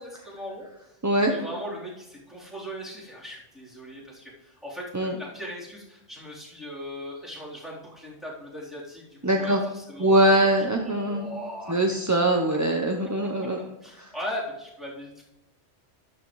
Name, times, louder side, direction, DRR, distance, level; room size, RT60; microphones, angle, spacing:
voice 1, 0.0-1.0 1.3-10.5 10.8-12.0 13.4-13.5 13.8-15.2, equal, ahead, -7 dB, 3.6 m, -39 dB
voice 2, 9.2-9.6 10.0-11.4 11.7-13.6 13.9-14.1, right 1 dB, 20° right, 2 dB, 0.6 m, -22 dB
13.0 x 11.0 x 3.2 m, 0.90 s
omnidirectional pair, 1.3 m